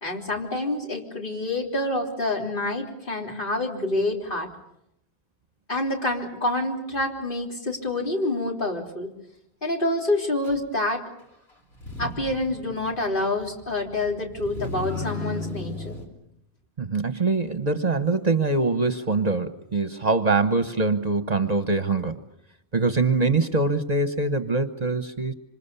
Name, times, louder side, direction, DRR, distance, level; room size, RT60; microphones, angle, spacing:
voice 1, 0.0-4.5 5.7-9.1 9.6-11.0 12.0-16.0, left 2 dB, 55° left, 0 dB, 3.7 m, -27 dB
Motor vehicle (road), 10.4-10.6 11.7-16.1, left 2 dB, 70° left, 3.8 m, -36 dB
voice 2, 16.8-22.2 22.7-25.3, right 3 dB, 40° right, 9 dB, 1.2 m, -23 dB
26.5 x 26.0 x 6.9 m, 0.78 s
omnidirectional pair, 1.1 m